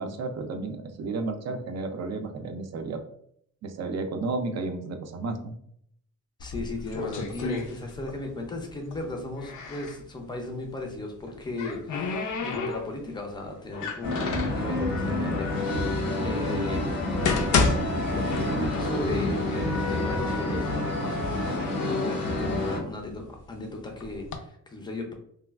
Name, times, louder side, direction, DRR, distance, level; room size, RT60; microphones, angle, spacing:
voice 1, 0.0-3.0 3.6-5.6, right 3 dB, 55° right, 6 dB, 0.4 m, -32 dB
sound 1, 6.4-8.3 8.6-10.0 11.1-13.2 13.7-14.6 15.4-15.5 16.2-16.3 16.9-18.9 19.2-19.3 20.0-20.1 20.5-21.2 21.7-23.4 24.0-24.4, left 4 dB, 65° left, 0.5 m, -30 dB
voice 2, 6.4-16.9 18.0-25.1, left 2 dB, 15° left, 3 dB, 0.4 m, -36 dB
sound 2, 14.0-22.8, left 1 dB, 85° left, 1.0 m, -28 dB
3.2 x 2.2 x 2.3 m, 0.68 s
wide cardioid pair, 155°, 33 cm